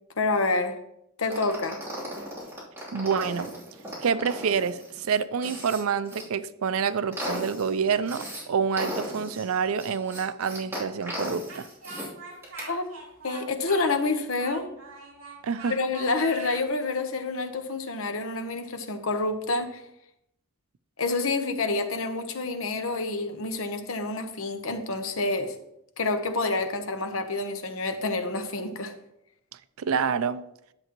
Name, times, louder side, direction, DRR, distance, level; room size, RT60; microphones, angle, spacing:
voice 1, 0.2-0.8 1.2-1.8 12.7-12.9 13.2-14.7 15.7-19.8 21.0-25.5 26.0-28.9, left 3 dB, 75° left, 1.0 m, -28 dB
sound 1, 1.3-6.2 6.7-8.4 8.8-12.1 12.4-12.7, equal, 15° right, 3.0 m, -36 dB
voice 2, 2.9-3.5 4.0-11.7 15.4-15.7 29.8-30.4, right 6 dB, 90° right, 0.5 m, -27 dB
Speech, 11.5-16.6, right 3 dB, 70° right, 3.0 m, -43 dB
10.5 x 7.7 x 3.0 m
head